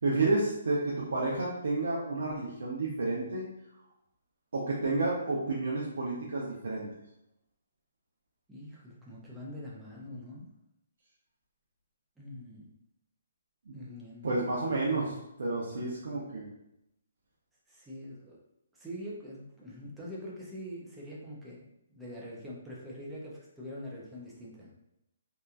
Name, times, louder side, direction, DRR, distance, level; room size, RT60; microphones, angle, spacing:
voice 1, 0.0-3.4 4.5-6.9 13.7-13.8 14.2-16.5, right 2 dB, 60° right, -5 dB, 0.5 m, -30 dB
voice 2, 8.5-10.5 12.2-12.7 13.7-14.7 15.6-16.4 17.7-18.4 18.7-21.6 21.9-24.7, equal, 5° right, -6 dB, 0.4 m, -44 dB
2.8 x 2.3 x 2.3 m, 0.83 s
hypercardioid pair, 180°, 0 cm